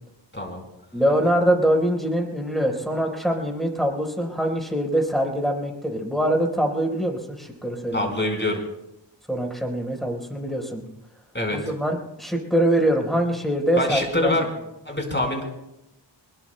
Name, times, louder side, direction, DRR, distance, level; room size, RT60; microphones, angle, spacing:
voice 1, 0.3-0.6 7.9-8.6 11.3-11.6 13.7-14.5 14.8-15.4, left 1 dB, 25° left, 1 dB, 4.8 m, -25 dB
voice 2, 0.9-8.1 9.3-10.8 11.5-14.3, right 1 dB, ahead, 0 dB, 4.2 m, -23 dB
24.0 x 21.0 x 2.2 m, 0.88 s
wide cardioid pair, 40°, 44 cm